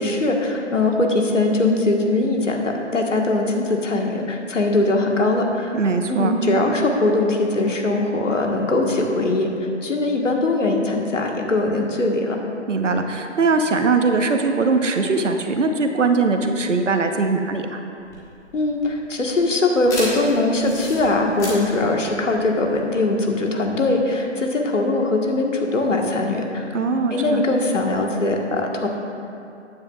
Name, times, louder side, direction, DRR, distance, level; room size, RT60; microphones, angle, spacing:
voice 1, 0.0-5.7 6.1-9.5 9.8-12.4 18.5-26.8 27.1-28.9, left 2 dB, 80° left, 1 dB, 1.6 m, -21 dB
voice 2, 5.7-6.3 12.7-17.8 26.7-27.5, right 4 dB, 75° right, 5 dB, 1.1 m, -21 dB
sound 1, 18.0-23.1, left 1 dB, 10° left, 1.2 m, -34 dB
13.5 x 9.6 x 2.4 m, 2.6 s
figure-of-eight pair, 150°, 37 cm